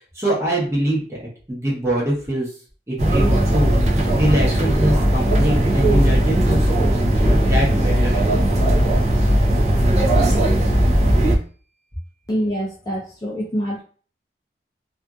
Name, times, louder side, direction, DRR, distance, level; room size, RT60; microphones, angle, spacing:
voice 1, 0.1-1.2 1.5-2.5 2.9-3.8 4.2-7.0 7.4-8.6, right 1 dB, 15° right, -5 dB, 0.8 m, -23 dB
sound 1, 3.0-11.4, right 1 dB, 40° right, 0.4 m, -17 dB
voice 2, 12.3-13.8, equal, 20° left, -5 dB, 0.4 m, -25 dB
2.5 x 2.5 x 2.3 m, 0.42 s
head